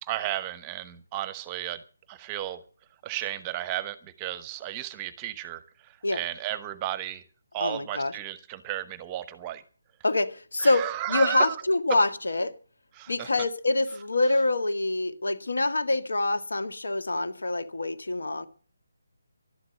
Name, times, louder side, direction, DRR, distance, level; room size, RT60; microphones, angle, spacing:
voice 1, 0.0-2.6 3.0-7.3 7.5-9.6 10.6-11.6 11.9-12.0 12.9-13.3, right 13 dB, 15° right, 16 dB, 0.9 m, -34 dB
voice 2, 7.6-8.1 10.0-12.5 13.1-18.5, left 2 dB, 60° left, 9 dB, 1.9 m, -26 dB
12.0 x 12.0 x 7.7 m, 0.39 s
figure-of-eight pair, 150°, 0 cm